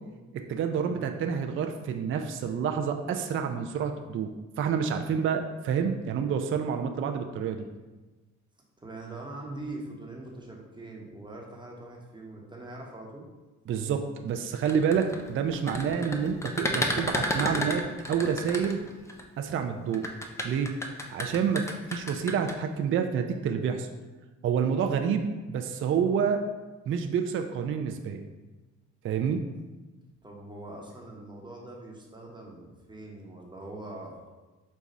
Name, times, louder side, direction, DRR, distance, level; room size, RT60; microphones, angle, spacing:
voice 1, 0.3-7.6 13.7-18.8 19.4-20.1 20.4-20.7 21.1-23.9 24.4-26.4 26.9-28.2 29.0-29.4, right 7 dB, 45° right, 5 dB, 0.4 m, -28 dB
voice 2, 8.8-13.3 30.2-34.2, right 2 dB, 15° right, -2 dB, 0.9 m, -42 dB
sound 1, 14.5-19.2 19.9-22.5, left 1 dB, 10° left, 0.5 m, -31 dB
5.2 x 2.3 x 4.1 m, 1.2 s
cardioid pair, 90°, 30 cm